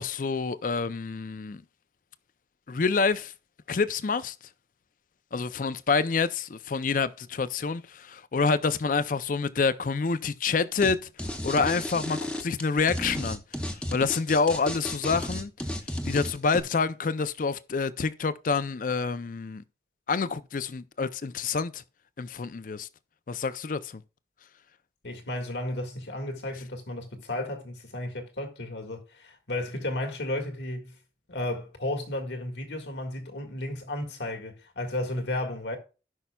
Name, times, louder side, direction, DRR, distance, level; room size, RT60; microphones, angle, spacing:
voice 1, 0.0-1.6 2.7-3.3 3.7-4.3 5.3-11.0 11.4-15.5 16.1-19.6 20.1-21.8 22.2-22.9 23.3-24.0, left 4 dB, 50° left, 0.5 m, -27 dB
sound 1, 10.8-10.9 11.2-16.6, left 1 dB, 5° left, 0.8 m, -33 dB
voice 2, 25.0-30.9 31.3-35.8, left 1 dB, 80° left, 1.7 m, -33 dB
16.5 x 5.6 x 2.3 m
head